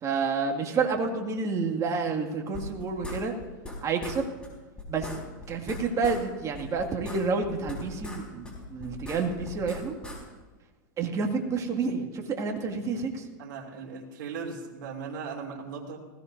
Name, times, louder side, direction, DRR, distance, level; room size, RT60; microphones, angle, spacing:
voice 1, 0.0-3.3 3.8-4.2 4.9-5.1 5.5-9.9 11.0-13.3, right 4 dB, 30° right, 2 dB, 2.2 m, -29 dB
sound 1, 2.5-3.8 4.0-4.2 4.4-4.5 4.8-6.2 6.5-8.2 8.4-10.2, left 2 dB, 10° left, 4.3 m, -39 dB
voice 2, 13.4-16.0, right 5 dB, 65° right, -2 dB, 2.9 m, -38 dB
20.0 x 16.5 x 2.7 m, 1.2 s
hypercardioid pair, 110°, 11 cm